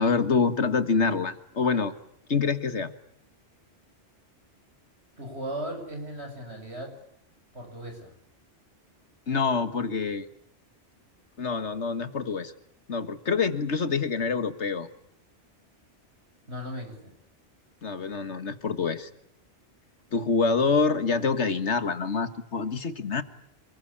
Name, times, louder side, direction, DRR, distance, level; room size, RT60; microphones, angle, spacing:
voice 1, 0.0-1.9 2.3-2.9 9.3-10.3 11.4-12.5 12.9-14.9 17.8-19.1 20.1-23.2, left 4 dB, 70° left, 11 dB, 2.0 m, -26 dB
voice 2, 5.2-6.9 7.5-8.1 16.5-17.1, right 1 dB, 65° right, 4 dB, 8.0 m, -37 dB
28.5 x 21.5 x 8.8 m, 0.72 s
omnidirectional pair, 1.2 m